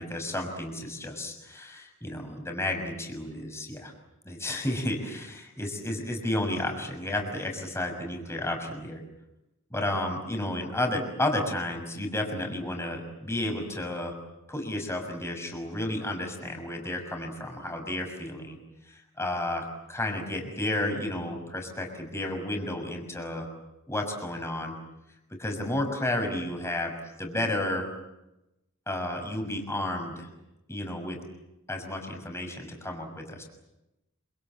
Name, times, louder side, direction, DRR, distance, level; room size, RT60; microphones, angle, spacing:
voice 1, 0.0-3.9 4.2-9.0 9.7-14.1 14.5-18.6 18.9-23.5 23.9-24.7 25.4-26.9 27.2-27.9 28.9-30.3 30.7-31.2 31.7-33.4, left 1 dB, 15° left, 3 dB, 6.1 m, -32 dB
27.5 x 27.0 x 7.6 m, 0.93 s
head